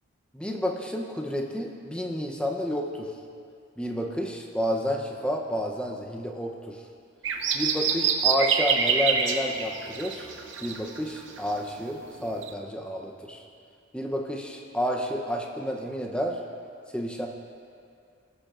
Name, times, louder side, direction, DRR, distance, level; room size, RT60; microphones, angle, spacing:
voice 1, 0.3-3.1 3.8-6.8 7.5-10.3 10.6-13.4 13.9-16.4 16.9-17.3, equal, 5° left, 0 dB, 0.7 m, -30 dB
sound 1, 7.2-12.0 12.4-12.5, right 6 dB, 65° right, 0.7 m, -26 dB
19.5 x 8.6 x 2.5 m, 2.3 s
head